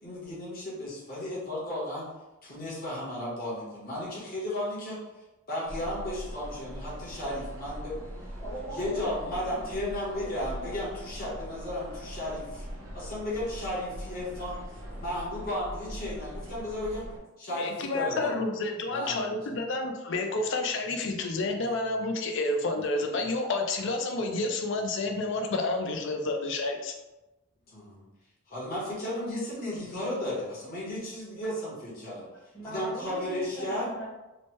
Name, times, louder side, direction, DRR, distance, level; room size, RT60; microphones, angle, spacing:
voice 1, 0.0-2.1 2.4-5.0 5.5-8.0 8.7-12.7 12.9-14.6 15.0-17.1 17.4-18.3 18.9-19.3 27.7-28.0 28.5-32.2 32.7-33.9, left 1 dB, 45° left, -7 dB, 1.0 m, -34 dB
sound 1, 5.6-17.2, equal, 80° right, 0.7 m, -41 dB
voice 2, 8.4-10.5 32.3-34.0, right 1 dB, 15° left, -8 dB, 0.9 m, -40 dB
voice 3, 17.6-26.9, left 2 dB, 60° left, 4 dB, 0.4 m, -30 dB
3.0 x 2.1 x 3.0 m, 1.0 s
head